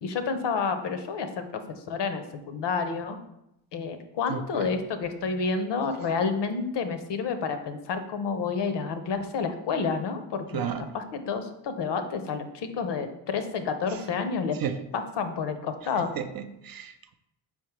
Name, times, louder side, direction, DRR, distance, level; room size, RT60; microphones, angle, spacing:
voice 1, 0.0-1.6 1.9-3.2 3.7-14.6 14.9-16.1, left 5 dB, 60° left, 8 dB, 0.7 m, -29 dB
voice 2, 4.3-4.8 10.5-10.9 14.6-14.8 16.2-17.1, right 7 dB, 50° right, 8 dB, 0.4 m, -33 dB
4.2 x 3.6 x 3.1 m, 0.83 s
supercardioid pair, 60°, 49 cm